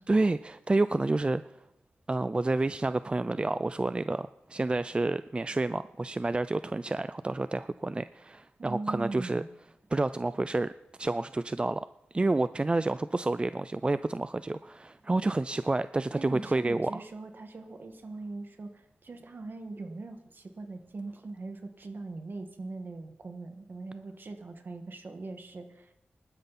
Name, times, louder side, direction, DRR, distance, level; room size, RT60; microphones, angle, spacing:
voice 1, 0.1-1.4 2.1-9.4 9.9-10.7 11.0-11.9 12.1-16.9, right 2 dB, 25° right, 14 dB, 0.4 m, -29 dB
voice 2, 8.6-9.5 16.2-25.9, right 3 dB, 55° right, 6 dB, 1.9 m, -41 dB
19.0 x 12.0 x 4.2 m, 0.88 s
cardioid pair, 70°, 4 cm